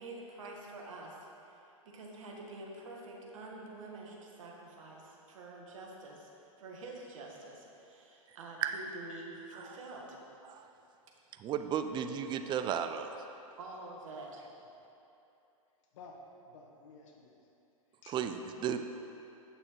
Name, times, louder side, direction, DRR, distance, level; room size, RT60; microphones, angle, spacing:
voice 1, 0.0-10.2 13.6-14.4, right 2 dB, 65° right, -1 dB, 1.7 m, -47 dB
voice 2, 11.4-13.2 18.1-18.8, right 8 dB, 25° right, 8 dB, 0.5 m, -34 dB
voice 3, 15.9-17.4 18.0-18.2, left 3 dB, 60° left, 0 dB, 1.5 m, -53 dB
8.6 x 6.7 x 4.5 m, 2.8 s
hypercardioid pair, 110°, 18 cm